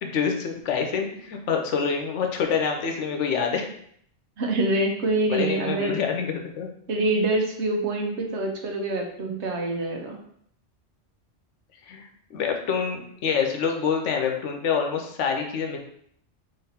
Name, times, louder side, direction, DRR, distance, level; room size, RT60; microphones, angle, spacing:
voice 1, 0.0-3.7 5.3-6.7 11.9-15.8, left 6 dB, 80° left, 3 dB, 1.0 m, -26 dB
voice 2, 4.4-5.9 6.9-10.2, right 2 dB, 70° right, 2 dB, 1.1 m, -25 dB
3.9 x 3.0 x 4.2 m, 0.67 s
omnidirectional pair, 1.2 m